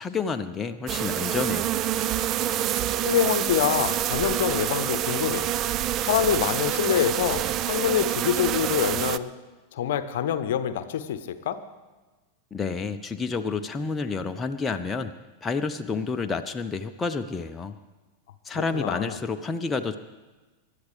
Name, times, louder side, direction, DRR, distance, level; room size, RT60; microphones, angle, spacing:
voice 1, 0.0-1.8 12.5-15.1 15.4-17.7 18.4-20.0, left 4 dB, 15° left, 6 dB, 0.7 m, -29 dB
sound 1, 0.9-9.2, right 11 dB, 35° right, 0.4 m, -27 dB
voice 2, 3.0-5.5 6.0-9.3 9.7-11.6 18.5-19.2, left 9 dB, 55° left, 12 dB, 0.9 m, -26 dB
27.5 x 12.5 x 3.4 m, 1.2 s
figure-of-eight pair, 90°, 0 cm